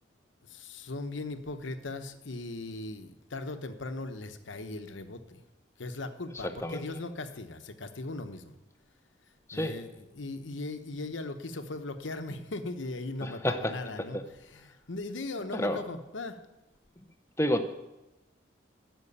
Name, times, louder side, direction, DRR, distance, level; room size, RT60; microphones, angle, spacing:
voice 1, 0.4-5.4 5.8-8.5 9.5-16.4, left 2 dB, 90° left, 8 dB, 0.9 m, -39 dB
voice 2, 6.4-6.8 9.5-9.8 13.2-14.2 15.5-15.8 17.4-17.7, equal, 15° left, 8 dB, 0.7 m, -30 dB
11.0 x 6.3 x 8.6 m, 0.98 s
head